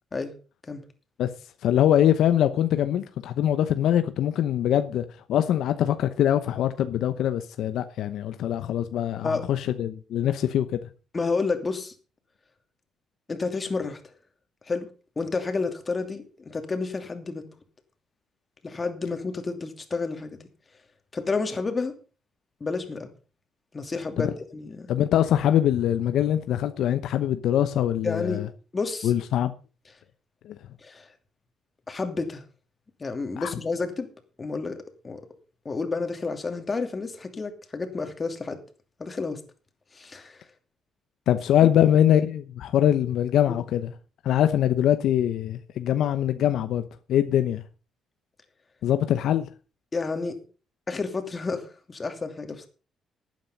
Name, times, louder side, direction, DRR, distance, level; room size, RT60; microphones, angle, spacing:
voice 1, 1.6-10.8 24.2-24.3 24.9-28.5 29.0-29.5 30.4-30.5 33.4-33.5 41.3-43.9 44.2-46.8 47.1-47.6 48.8-49.5, left 11 dB, 80° left, 0.9 m, -23 dB
voice 2, 11.1-11.9 13.3-14.0 14.7-14.9 15.2-17.5 18.6-20.4 21.1-21.9 22.6-23.1 23.7-24.9 28.0-28.4 28.7-29.1 30.8-31.1 31.9-32.4 33.0-34.1 34.4-35.2 35.6-38.6 39.0-39.4 39.9-40.4 49.9-50.4 50.9-52.7, left 4 dB, 30° left, 2.7 m, -30 dB
12.0 x 9.3 x 5.5 m
cardioid pair, 90°, 0 cm